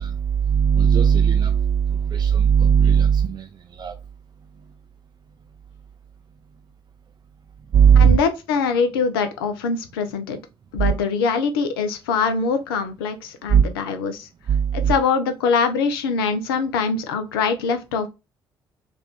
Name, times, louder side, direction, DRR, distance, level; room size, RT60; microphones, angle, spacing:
voice 1, 0.5-1.5 2.2-3.2 3.8-3.9 7.7-8.2 10.8-10.9 13.5-13.6, right 7 dB, 35° right, 0.4 m, -15 dB
voice 2, 7.9-10.4 10.7-14.3 14.7-18.1, left 5 dB, 75° left, 0.5 m, -23 dB
3.4 x 2.4 x 3.4 m
figure-of-eight pair, 45°, 12 cm